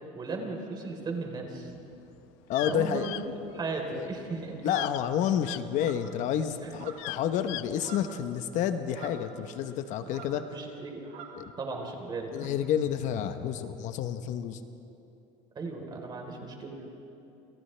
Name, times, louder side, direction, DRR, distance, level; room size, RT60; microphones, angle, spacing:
voice 1, 0.1-1.7 2.6-3.1 3.5-4.7 6.6-6.7 10.5-11.1 11.6-12.4 15.6-16.8, right 3 dB, 30° right, 1 dB, 3.9 m, -36 dB
sound 1, 1.8-5.6 6.1-7.8, left 21 dB, 80° left, 0.4 m, -38 dB
voice 2, 2.5-3.1 3.9-4.1 4.6-10.5 11.4-11.5 12.3-14.6, left 9 dB, 55° left, 9 dB, 1.0 m, -30 dB
sound 2, 4.6-5.0 5.7-6.2 6.7-7.2 7.5-8.2 8.9-9.7 10.0-10.5 11.0-11.4 12.3-12.5, right 6 dB, 60° right, 3.2 m, -47 dB
29.0 x 28.0 x 3.4 m, 2.8 s
cardioid pair, 135°, 15 cm